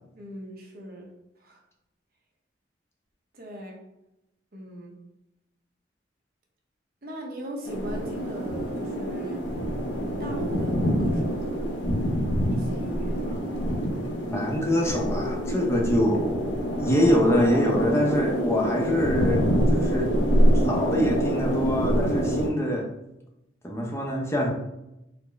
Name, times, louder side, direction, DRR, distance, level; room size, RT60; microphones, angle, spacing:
voice 1, 0.1-1.1 1.4-1.6 3.3-3.8 4.5-4.9 7.0-9.4 10.0-11.8 12.5-13.4, right 1 dB, 55° right, -1 dB, 0.8 m, -39 dB
sound 1, 7.6-22.5, equal, 75° left, 0.6 m, -26 dB
voice 2, 14.3-20.1 20.5-22.9 23.6-24.5, equal, 15° left, -1 dB, 0.6 m, -25 dB
4.0 x 2.0 x 3.3 m, 0.89 s
head